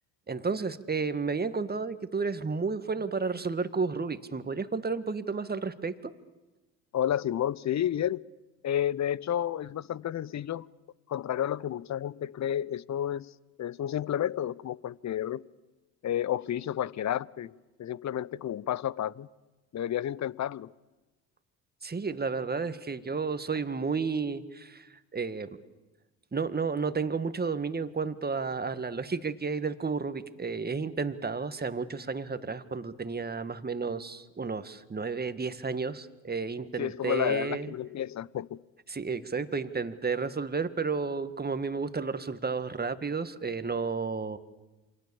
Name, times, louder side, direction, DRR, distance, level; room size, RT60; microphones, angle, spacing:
voice 1, 0.3-6.1 21.8-25.6 26.3-37.7 38.9-44.4, right 4 dB, 20° right, 1.8 m, -32 dB
voice 2, 6.9-8.2 8.6-10.7 11.1-13.3 13.6-15.4 16.0-19.3 19.7-20.7 36.8-38.6, left 10 dB, 40° left, 0.8 m, -31 dB
28.0 x 25.0 x 7.1 m
hypercardioid pair, 65°, 43 cm